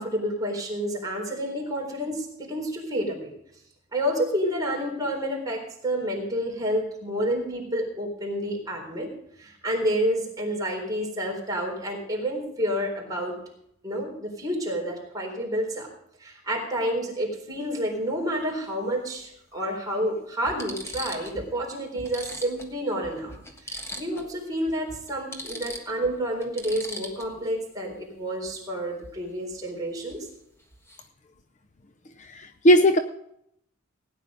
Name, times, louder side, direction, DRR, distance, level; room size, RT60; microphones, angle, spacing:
voice 1, 0.0-3.3 3.9-9.1 9.4-13.4 13.8-15.9 16.2-23.3 23.6-30.3, equal, 20° right, -2 dB, 4.0 m, -29 dB
sound 1, 17.5-17.7 19.2-19.3 20.0-20.1 20.5-21.4 21.7-21.8 22.0-24.3 24.6-24.8 25.1-27.5 30.1-30.3 30.6-31.1, left 1 dB, 15° left, 1.4 m, -39 dB
voice 2, 32.2-33.0, equal, 35° left, 10 dB, 0.6 m, -18 dB
17.0 x 9.7 x 5.1 m, 0.73 s
head